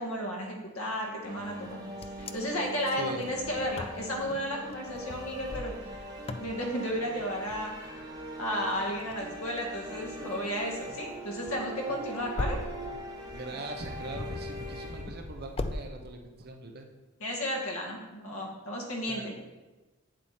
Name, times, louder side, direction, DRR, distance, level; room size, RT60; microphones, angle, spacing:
voice 1, 0.0-1.8 2.3-5.7 6.4-12.6 17.2-19.3, equal, 75° left, -1 dB, 2.2 m, -33 dB
sound 1, 1.2-15.4, right 1 dB, 20° right, 1.7 m, -42 dB
Wind, 1.6-15.8, left 2 dB, 25° left, 0.4 m, -41 dB
voice 2, 13.3-16.9 19.1-19.3, right 2 dB, 45° right, 4 dB, 0.8 m, -41 dB
9.2 x 7.5 x 4.4 m, 1.2 s
head